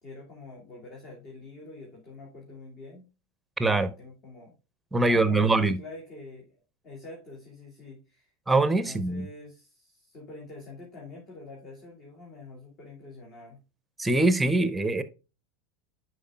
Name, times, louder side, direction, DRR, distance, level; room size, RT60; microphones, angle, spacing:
voice 1, 0.0-3.1 3.7-4.5 5.0-6.6 6.8-8.3 8.6-13.6, left 3 dB, 40° left, 2.2 m, -46 dB
voice 2, 3.6-3.9 4.9-5.8 8.5-9.2 14.0-15.0, right 2 dB, 10° right, 0.7 m, -23 dB
10.0 x 4.8 x 2.2 m
figure-of-eight pair, 85°, 0 cm